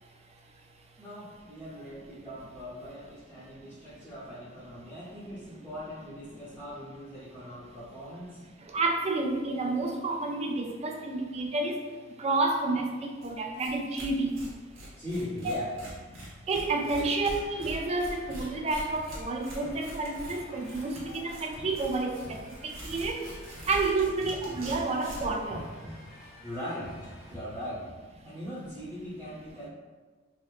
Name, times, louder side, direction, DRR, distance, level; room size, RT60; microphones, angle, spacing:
voice 1, 1.0-8.4 15.0-15.7 17.0-17.1 26.4-27.9 28.2-29.7, equal, 10° left, -11 dB, 0.8 m, -40 dB
voice 2, 8.7-11.8 12.2-14.4 15.4-15.6 16.5-22.2 22.6-23.2 23.7-25.6, right 3 dB, 30° right, 2 dB, 0.4 m, -30 dB
Tearing, 13.2-13.3 13.6-13.7 14.0-25.4, right 1 dB, 85° right, 1.0 m, -44 dB
sound 1, 16.7-27.4, left 1 dB, 55° left, 1.0 m, -48 dB
3.9 x 2.5 x 2.5 m, 1.4 s
head